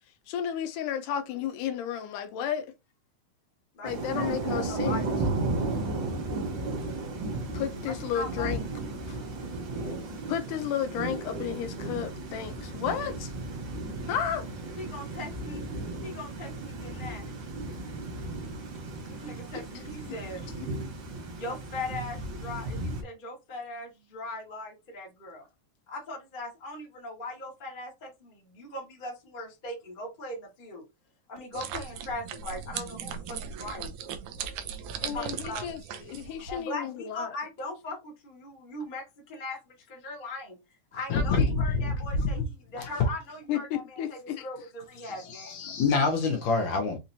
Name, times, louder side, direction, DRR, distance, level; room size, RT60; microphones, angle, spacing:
voice 1, 0.3-2.7 3.8-5.0 7.5-8.6 9.1-9.2 9.8-13.3 14.1-14.5 19.5-20.7 35.0-37.3 43.5-44.5, left 9 dB, 80° left, 2.2 m, -33 dB
voice 2, 3.7-4.3 4.7-5.2 8.0-8.5 14.8-15.6 16.0-17.2 19.1-20.4 21.3-25.4 25.9-30.8 31.3-34.1 35.1-35.7 36.5-39.6 39.9-40.6 40.9-42.4 42.7-45.6, left 2 dB, 25° left, 1.1 m, -39 dB
Thunder / Rain, 3.8-23.0, right 2 dB, 55° right, 1.3 m, -34 dB
sound 1, 31.5-36.6, right 8 dB, 75° right, 2.0 m, -38 dB
voice 3, 41.1-42.4 42.8-43.1 45.0-47.0, left 4 dB, 65° left, 2.1 m, -27 dB
5.8 x 2.9 x 2.7 m
omnidirectional pair, 3.7 m